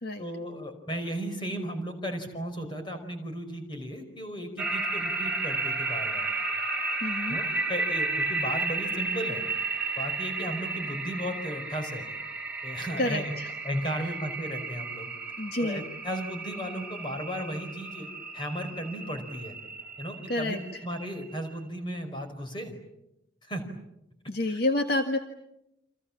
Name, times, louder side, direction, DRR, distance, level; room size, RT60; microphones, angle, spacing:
voice 1, 0.2-6.3 7.2-9.4 10.0-12.1 12.6-13.4 13.6-15.1 15.6-18.1 18.3-19.6 20.0-22.7 23.4-23.6 24.5-24.6, equal, 25° left, 5 dB, 5.1 m, -35 dB
sound 1, 4.6-21.3, right 3 dB, 5° right, 3.2 m, -33 dB
voice 2, 7.0-7.4 13.0-13.5 15.4-15.8 20.3-20.8 24.3-25.2, left 2 dB, 55° left, 5 dB, 1.8 m, -29 dB
29.5 x 26.5 x 7.4 m, 0.86 s
head